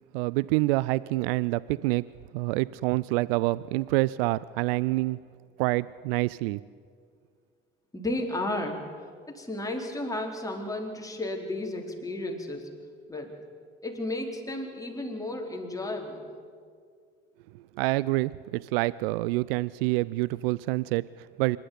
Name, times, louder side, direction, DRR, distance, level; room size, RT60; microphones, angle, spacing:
voice 1, 0.1-2.0 2.3-5.2 5.6-6.6 17.8-21.6, right 20 dB, 75° right, 20 dB, 0.4 m, -27 dB
voice 2, 7.9-8.8 9.3-12.7 13.1-13.3 13.8-16.3, left 1 dB, 10° left, 1 dB, 4.2 m, -33 dB
25.5 x 12.0 x 9.4 m, 2.1 s
hypercardioid pair, 60°, 29 cm